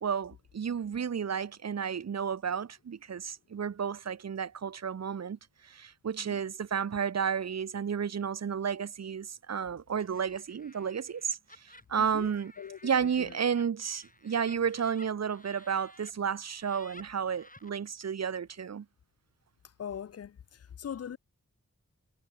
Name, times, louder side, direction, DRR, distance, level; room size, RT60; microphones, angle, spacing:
voice 1, 0.0-5.4 5.6-12.5 12.8-18.9, right 7 dB, 55° right, 0.6 m, -32 dB
Laughter, 10.0-16.1 16.5-17.7, left 1 dB, 25° left, 3.6 m, -55 dB
voice 2, 12.0-13.4 19.8-21.2, left 8 dB, 55° left, 0.4 m, -42 dB
wide cardioid pair, 40°, 31 cm